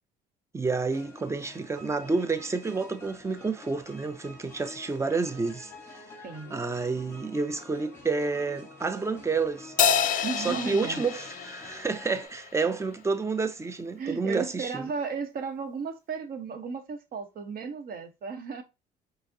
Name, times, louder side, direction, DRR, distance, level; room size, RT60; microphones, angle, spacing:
voice 1, 0.5-6.0 6.5-9.7 10.4-14.9, right 4 dB, 15° right, 0.4 m, -29 dB
sound 1, 0.9-12.3, left 2 dB, 15° left, 1.2 m, -48 dB
voice 2, 6.2-6.5 10.2-11.0 14.0-18.6, right 5 dB, 55° right, 0.8 m, -34 dB
Crash cymbal, 9.8-12.5, left 7 dB, 50° left, 0.4 m, -28 dB
4.9 x 2.0 x 2.6 m
cardioid pair, 100°, 18 cm